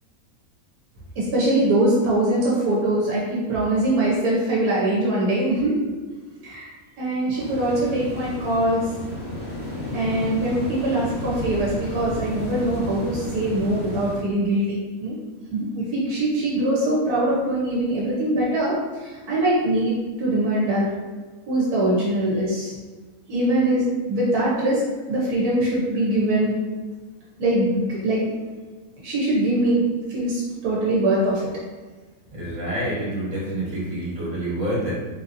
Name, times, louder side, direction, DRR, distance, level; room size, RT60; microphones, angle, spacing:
voice 1, 1.2-5.7 6.4-6.7 7.0-8.9 9.9-15.2 15.5-20.9 21.5-22.7 23.3-24.8 25.1-26.5 27.4-28.3 29.0-29.8 30.1-31.5, right 1 dB, 85° right, -6 dB, 1.3 m, -22 dB
sound 1, 7.4-14.2, left 1 dB, 40° left, 1.4 m, -32 dB
voice 2, 32.3-34.9, right 1 dB, 55° right, -7 dB, 1.6 m, -27 dB
3.9 x 2.7 x 2.5 m, 1.3 s
omnidirectional pair, 1.6 m